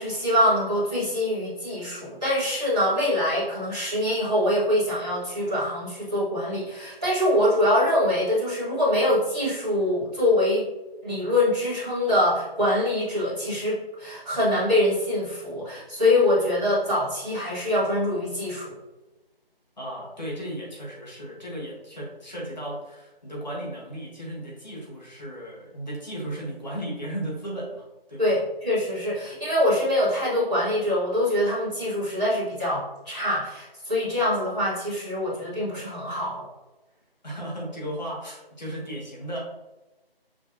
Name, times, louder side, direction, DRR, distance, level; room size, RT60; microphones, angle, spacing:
voice 1, 0.0-10.7 11.0-18.8 28.2-36.5, left 1 dB, 5° right, -20 dB, 1.1 m, -24 dB
voice 2, 19.8-28.3 37.2-39.4, right 1 dB, 45° left, -4 dB, 1.3 m, -35 dB
6.0 x 3.0 x 2.7 m, 1.1 s
figure-of-eight pair, 165°, 30 cm